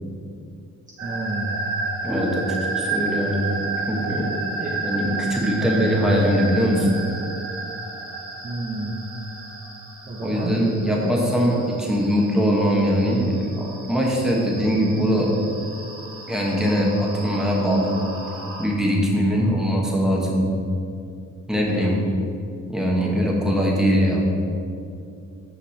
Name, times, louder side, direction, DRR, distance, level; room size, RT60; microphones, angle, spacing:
voice 1, 1.0-1.7 4.6-4.8 5.6-5.7 8.4-8.9 10.1-10.6 10.8-11.7 19.3-19.7 21.5-22.0, right 2 dB, 25° right, -3 dB, 0.8 m, -30 dB
sound 1, 1.0-18.7, right 3 dB, 45° right, 1.4 m, -32 dB
voice 2, 2.0-2.4 2.7-3.6 3.9-4.2 4.8-7.0 10.2-15.3 16.3-18.0 18.6-20.5 21.5-22.0 22.7-24.3, equal, ahead, -3 dB, 1.2 m, -21 dB
5.8 x 5.2 x 4.2 m, 2.6 s
cardioid pair, 90°, 30 cm